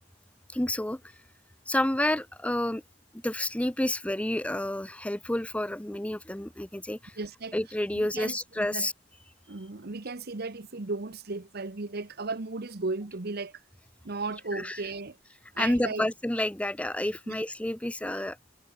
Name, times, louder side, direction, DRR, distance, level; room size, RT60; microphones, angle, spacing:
voice 1, 0.5-1.0 1.7-2.8 3.1-7.2 7.5-8.9 14.5-14.8 15.6-18.4, left 1 dB, 5° left, 0.6 m, -29 dB
voice 2, 7.2-7.5 7.9-8.9 9.5-13.6 14.0-15.2 15.5-16.1 17.3-17.4, right 3 dB, 55° right, 1.1 m, -35 dB
head